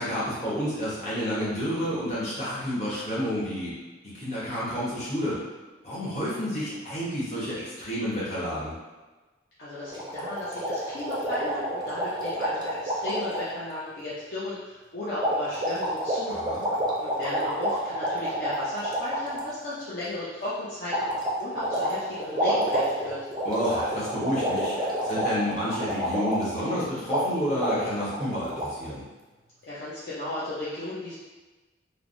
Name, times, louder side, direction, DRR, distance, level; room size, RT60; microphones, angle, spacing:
voice 1, 0.0-3.8 4.1-5.4 5.8-8.7 16.3-16.6 23.4-29.0, equal, 35° left, -9 dB, 0.9 m, -30 dB
voice 2, 9.6-16.7 17.0-23.2 29.6-31.1, left 2 dB, 55° left, -10 dB, 0.5 m, -35 dB
sound 1, 9.9-13.5 15.2-19.5 20.9-26.8 27.1-27.3 27.6-28.6, equal, 25° right, 0.4 m, -28 dB
3.2 x 2.1 x 2.5 m, 1.2 s
head